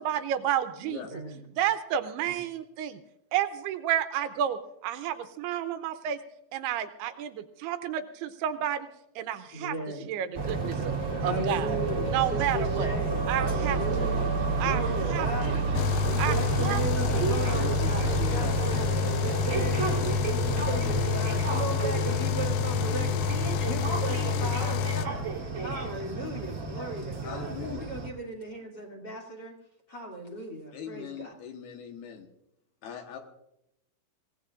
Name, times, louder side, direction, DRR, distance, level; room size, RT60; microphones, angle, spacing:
voice 1, 0.0-1.0 1.6-3.0 3.3-6.2 6.5-8.9 9.2-9.7 10.1-10.9 11.2-11.7 12.1-12.9 13.3-14.1 14.6-15.6 16.2-17.2, right 10 dB, 80° right, 9 dB, 2.7 m, -31 dB
voice 2, 9.5-10.1 11.1-15.6 16.1-25.3 25.6-29.5 29.9-31.3, right 1 dB, 30° left, 1 dB, 2.7 m, -37 dB
sound 1, 10.3-28.1, right 4 dB, 30° right, 1.4 m, -30 dB
sound 2, 13.6-20.3, right 6 dB, 65° right, 2.2 m, -41 dB
voice 3, 15.4-15.9 17.5-18.5 27.2-27.9 30.7-32.3 32.8-33.2, left 8 dB, 70° left, 4 dB, 3.1 m, -41 dB
sound 3, 15.8-25.1, left 9 dB, 85° left, 2.0 m, -29 dB
25.0 x 17.5 x 2.5 m, 0.83 s
omnidirectional pair, 4.8 m